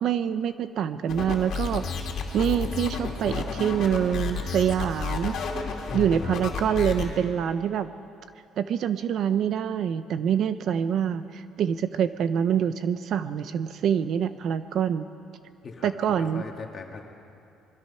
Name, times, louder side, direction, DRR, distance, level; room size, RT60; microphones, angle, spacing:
voice 1, 0.0-1.8 2.3-5.4 5.9-7.9 8.6-15.0 15.8-16.4, right 8 dB, 50° right, 12 dB, 0.6 m, -25 dB
sound 1, 1.1-7.1, left 5 dB, 50° left, 2.8 m, -31 dB
voice 2, 6.7-7.2 15.6-17.0, left 5 dB, 30° left, 2 dB, 2.2 m, -42 dB
25.0 x 21.5 x 5.6 m, 2.6 s
cardioid pair, 170°, 0 cm